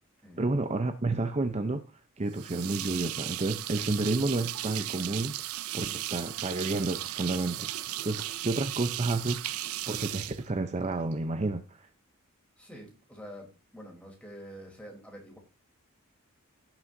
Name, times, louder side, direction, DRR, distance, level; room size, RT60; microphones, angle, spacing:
voice 1, 0.4-1.8 2.2-5.4 5.7-9.4 9.9-11.9, right 2 dB, 30° right, 0.6 m, -30 dB
sound 1, 2.3-11.1, right 14 dB, 70° right, 0.5 m, -36 dB
voice 2, 12.6-15.4, equal, 5° left, 3.3 m, -47 dB
16.5 x 6.1 x 2.6 m
head